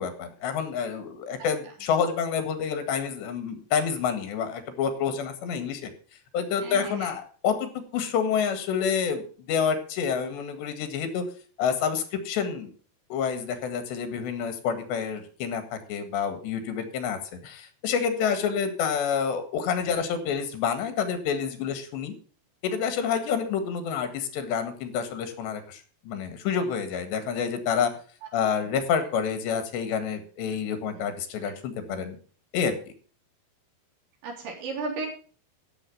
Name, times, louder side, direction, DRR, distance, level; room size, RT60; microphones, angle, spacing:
voice 1, 0.0-5.9 6.3-11.2 11.6-12.7 13.1-17.2 17.4-22.1 22.6-27.9 28.3-32.2 32.5-32.9, left 7 dB, 80° left, 8 dB, 4.0 m, -28 dB
voice 2, 6.6-7.1 31.9-32.0 34.2-35.1, right 3 dB, 90° right, 0 dB, 6.1 m, -34 dB
15.5 x 7.1 x 5.4 m, 0.41 s
omnidirectional pair, 5.0 m